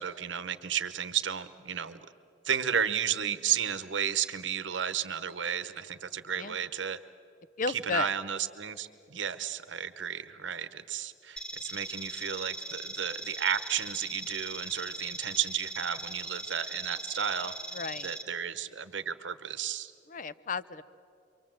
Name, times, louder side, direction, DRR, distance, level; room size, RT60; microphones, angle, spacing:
voice 1, 0.0-2.1 2.4-7.0 7.7-17.5 18.0-19.9, right 8 dB, 75° right, 12 dB, 0.9 m, -33 dB
voice 2, 7.6-8.1 17.7-18.1 20.1-20.8, left 4 dB, 45° left, 16 dB, 0.6 m, -33 dB
sound 1, 11.4-18.2, right 1 dB, 5° left, 1.1 m, -40 dB
28.5 x 23.5 x 7.6 m, 2.8 s
head